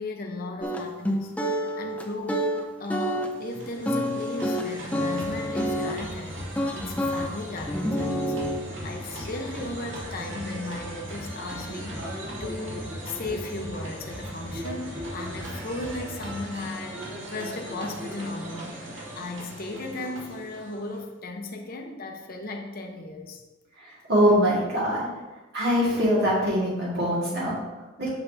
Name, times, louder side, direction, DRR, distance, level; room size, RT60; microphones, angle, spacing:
voice 1, 0.0-2.4 2.8-23.4, left 2 dB, 50° left, 2 dB, 1.0 m, -36 dB
sound 1, 0.6-6.0 6.6-7.3 7.7-8.6, equal, 10° left, 0.6 m, -28 dB
sound 2, 3.1-21.1, right 1 dB, 75° right, 2.3 m, -39 dB
sound 3, 4.9-16.6, left 1 dB, 15° right, 1.7 m, -41 dB
voice 2, 23.8-25.1 25.5-28.1, equal, 55° right, -6 dB, 2.1 m, -23 dB
9.1 x 6.7 x 2.8 m, 1.1 s
head